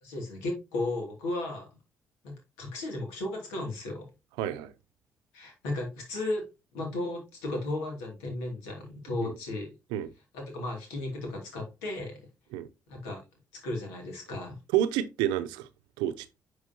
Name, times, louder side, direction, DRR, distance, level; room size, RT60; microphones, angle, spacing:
voice 1, 0.0-1.7 2.2-4.1 5.3-6.4 6.7-9.7 10.3-12.2 12.9-13.2 13.6-14.6, left 2 dB, 85° left, 2.7 m, -35 dB
voice 2, 4.4-4.7 9.2-9.3 9.9-10.1 12.5-12.7 14.7-15.7 16.0-16.4, right 12 dB, 80° right, 0.6 m, -29 dB
10.0 x 4.8 x 2.9 m
hypercardioid pair, 50°, 8 cm